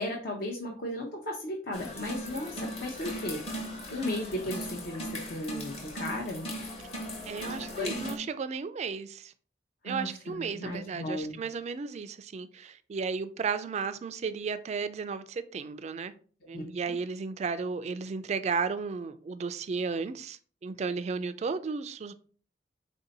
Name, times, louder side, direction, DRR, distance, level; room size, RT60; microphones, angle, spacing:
voice 1, 0.0-3.4 3.9-6.5 7.8-8.0 9.8-11.4 16.5-16.6, left 1 dB, 60° left, 0.7 m, -35 dB
sound 1, 1.7-8.2, equal, 35° left, 1.0 m, -38 dB
voice 2, 7.3-9.3 9.8-16.1 16.5-22.1, right 5 dB, 40° right, 0.3 m, -34 dB
4.2 x 2.7 x 4.0 m
head